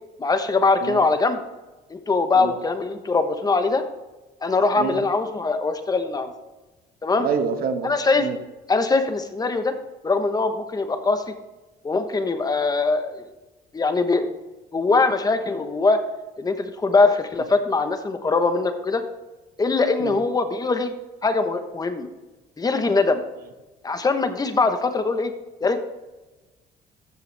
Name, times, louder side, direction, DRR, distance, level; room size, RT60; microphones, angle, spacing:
voice 1, 0.2-1.4 1.9-3.8 4.4-6.3 7.0-7.3 7.8-8.3 8.7-9.7 10.0-11.2 11.8-13.2 13.7-14.3 14.7-16.0 16.4-19.0 19.6-20.9 21.2-22.1 22.6-23.2 23.8-25.3 25.6-25.8, left 3 dB, 20° left, 8 dB, 1.1 m, -22 dB
voice 2, 4.8-5.1 7.2-7.9 8.2-8.4 20.0-20.2, right 6 dB, 60° right, 7 dB, 1.3 m, -27 dB
13.5 x 6.8 x 3.4 m, 1.1 s
cardioid pair, 110°, 17 cm